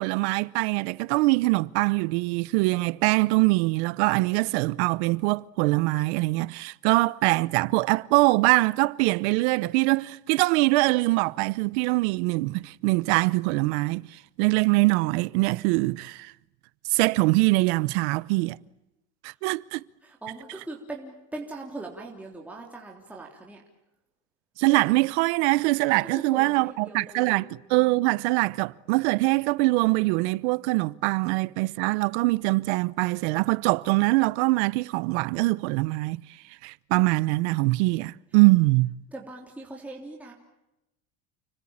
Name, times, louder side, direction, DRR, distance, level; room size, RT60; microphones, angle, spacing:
voice 1, 0.0-14.1 14.4-16.3 16.9-18.6 19.2-19.8 24.6-36.2 36.6-38.9, right 23 dB, 75° right, 1.0 m, -23 dB
voice 2, 20.0-23.6 26.3-27.5 39.1-40.3, right 2 dB, 5° right, 3.3 m, -40 dB
30.0 x 22.0 x 8.8 m
cardioid pair, 155°, 34 cm